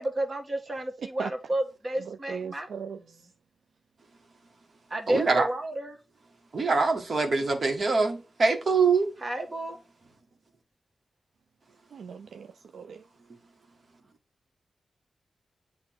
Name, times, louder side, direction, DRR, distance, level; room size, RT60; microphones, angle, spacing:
voice 1, 0.0-3.2 4.9-6.0 9.2-9.8, right 1 dB, 40° right, 1.8 m, -32 dB
voice 2, 2.1-3.0 11.9-13.0, right 6 dB, 85° right, 0.4 m, -38 dB
voice 3, 5.1-5.5 6.5-9.1, right 4 dB, 60° right, 1.7 m, -24 dB
7.6 x 2.9 x 6.1 m
cardioid pair, 45°, 0 cm